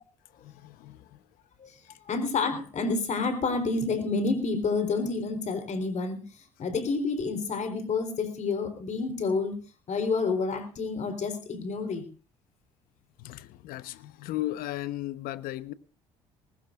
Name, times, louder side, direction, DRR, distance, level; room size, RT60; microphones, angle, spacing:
voice 1, 0.3-1.2 13.2-15.7, left 15 dB, 70° left, 1.0 m, -36 dB
voice 2, 1.6-9.6 9.9-12.1, left 4 dB, 50° left, 3.9 m, -29 dB
19.5 x 19.5 x 2.5 m
hypercardioid pair, 60°, 15 cm